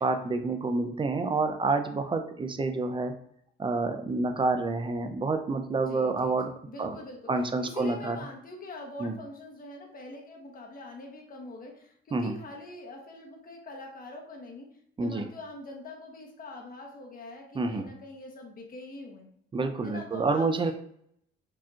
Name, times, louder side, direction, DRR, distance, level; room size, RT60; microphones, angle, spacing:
voice 1, 0.0-3.1 3.6-6.5 6.8-7.0 7.3-8.2 9.0-9.1 12.1-12.3 15.0-15.3 17.5-17.8 19.5-20.7, right 3 dB, 25° right, 6 dB, 0.5 m, -28 dB
voice 2, 5.7-6.4 6.6-14.7 15.0-19.3 19.8-20.7, left 2 dB, 45° left, 1 dB, 1.1 m, -44 dB
4.7 x 2.8 x 2.4 m, 0.69 s
cardioid pair, 90°, 20 cm